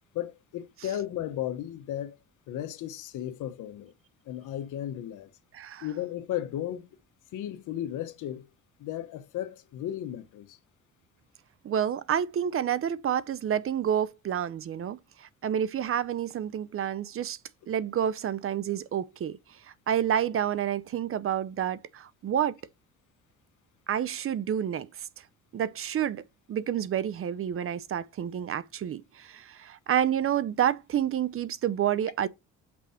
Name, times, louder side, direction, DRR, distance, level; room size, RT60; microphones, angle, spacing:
voice 1, 0.1-2.2 2.5-3.9 4.2-5.3 5.8-6.9 7.3-8.5 8.8-10.6, left 11 dB, 85° left, 1.0 m, -35 dB
voice 2, 5.5-5.8 11.6-17.4 17.7-19.4 19.9-22.5 23.9-24.9 25.5-26.2 26.5-32.3, right 9 dB, 45° right, 0.6 m, -29 dB
6.1 x 4.7 x 4.3 m
cardioid pair, 90°, 30 cm